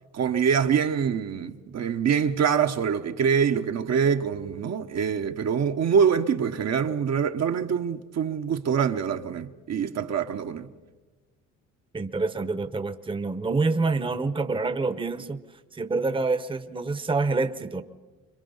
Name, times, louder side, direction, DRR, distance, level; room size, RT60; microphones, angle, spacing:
voice 1, 0.1-10.7, right 7 dB, 60° right, 1.2 m, -25 dB
voice 2, 11.9-15.4 15.7-17.8, right 3 dB, 15° right, 0.9 m, -27 dB
26.5 x 23.0 x 5.6 m
cardioid pair, 90°, 30 cm